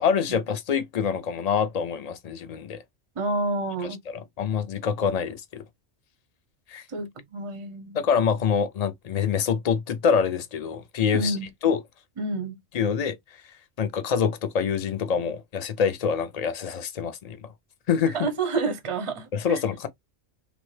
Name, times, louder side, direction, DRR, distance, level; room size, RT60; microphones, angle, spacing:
voice 1, 0.0-2.8 4.1-5.6 6.7-6.8 7.9-11.4 11.6-11.8 12.7-13.2 13.8-17.4 17.9-18.3 19.3-19.9, left 7 dB, 50° left, 0.4 m, -25 dB
voice 2, 3.2-4.0 6.9-8.0 11.1-11.5 12.2-12.6 18.0-19.6, right 3 dB, 35° right, 0.5 m, -29 dB
3.3 x 2.1 x 3.1 m
omnidirectional pair, 1.2 m